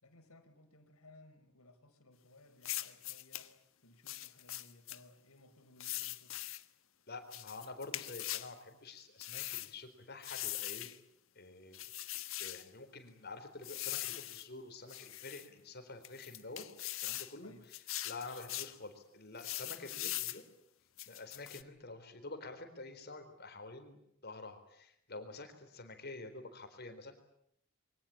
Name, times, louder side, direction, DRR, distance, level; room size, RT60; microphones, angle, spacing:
voice 1, 0.0-6.4 17.4-17.7, left 2 dB, 90° left, 7 dB, 4.6 m, -61 dB
sound 1, 2.6-3.5 4.1-5.0 5.8-6.6 7.3-8.5 9.2-9.7 10.2-11.0 11.7-12.6 13.6-14.5 14.9-15.5 16.0-17.3 17.7-18.7 19.4-20.4 21.0-21.6, left 15 dB, 65° left, 1.4 m, -41 dB
voice 2, 7.1-10.9 11.4-11.8 12.1-16.7 17.0-17.8 18.0-20.4 21.1-27.2, left 3 dB, 50° left, 7 dB, 4.1 m, -48 dB
27.0 x 24.0 x 8.8 m, 0.72 s
head